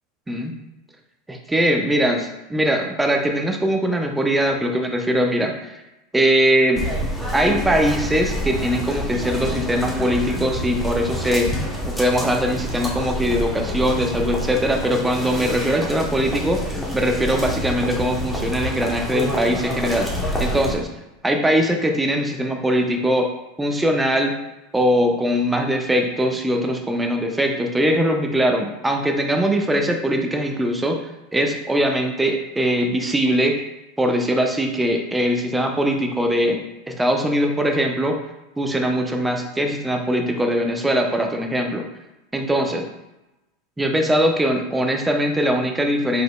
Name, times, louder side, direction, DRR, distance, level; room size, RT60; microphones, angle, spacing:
voice 1, 1.3-2.2 2.5-5.8 6.1-6.9 7.3-20.1 20.4-23.3 23.6-24.3 24.7-31.0 31.3-33.6 34.0-36.6 36.9-38.2 38.6-41.8 42.3-42.9 43.8-46.2, equal, 10° right, 3 dB, 0.7 m, -21 dB
sound 1, 6.7-20.7, left 1 dB, 10° left, 1.1 m, -27 dB
5.0 x 3.8 x 2.3 m, 0.97 s
hypercardioid pair, 85°, 0 cm